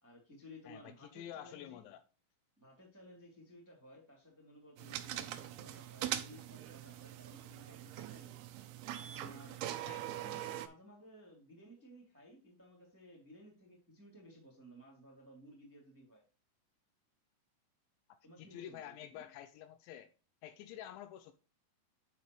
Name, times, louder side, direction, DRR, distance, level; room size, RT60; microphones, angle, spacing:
voice 1, 0.0-1.9 2.6-8.4 8.9-9.6 10.1-16.2 18.2-19.2, equal, 5° right, 1.8 m, -57 dB
voice 2, 0.7-2.0 9.8-10.0 18.4-20.1 20.4-21.3, left 11 dB, 80° left, 2.8 m, -49 dB
sound 1, 4.8-10.7, right 12 dB, 85° right, 2.2 m, -42 dB
10.0 x 5.5 x 3.2 m
omnidirectional pair, 5.5 m